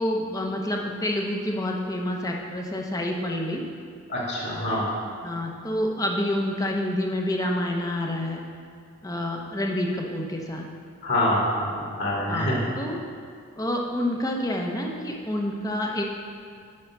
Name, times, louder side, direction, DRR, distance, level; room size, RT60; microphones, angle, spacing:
voice 1, 0.0-3.6 5.2-8.4 9.0-10.7 12.3-13.0 13.6-16.0, left 1 dB, 15° left, 0 dB, 0.8 m, -28 dB
voice 2, 4.1-4.9 11.0-12.6, left 1 dB, 55° left, -6 dB, 2.4 m, -25 dB
7.5 x 5.7 x 5.9 m, 2.2 s
head